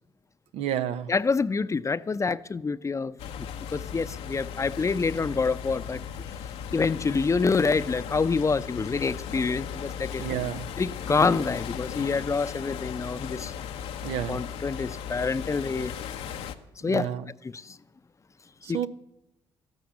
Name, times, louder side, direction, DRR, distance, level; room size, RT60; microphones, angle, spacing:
voice 1, 0.5-1.1 10.2-10.7 14.0-14.4 16.8-17.3 18.6-18.9, right 10 dB, 85° right, 12 dB, 0.7 m, -30 dB
voice 2, 1.1-3.1 3.7-6.0 6.7-10.2 10.8-13.5 14.3-15.9 16.8-17.1 18.7-18.9, left 4 dB, 30° left, 15 dB, 0.6 m, -26 dB
sound 1, 3.2-16.5, left 8 dB, 85° left, 0.9 m, -37 dB
13.0 x 9.3 x 8.7 m, 0.85 s
supercardioid pair, 65°, 10 cm